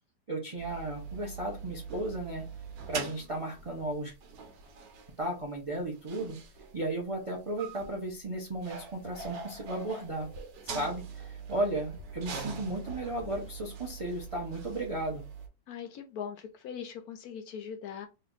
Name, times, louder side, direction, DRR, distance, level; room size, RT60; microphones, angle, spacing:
voice 1, 0.3-2.4 2.9-4.1 5.2-6.4 6.7-10.3 10.6-15.2, right 1 dB, 45° right, 0 dB, 0.4 m, -34 dB
sound 1, 0.6-15.5, right 5 dB, 70° right, 1.4 m, -43 dB
voice 2, 15.7-18.1, left 7 dB, 75° left, 6 dB, 0.8 m, -41 dB
3.3 x 2.6 x 3.8 m, 0.29 s
omnidirectional pair, 2.1 m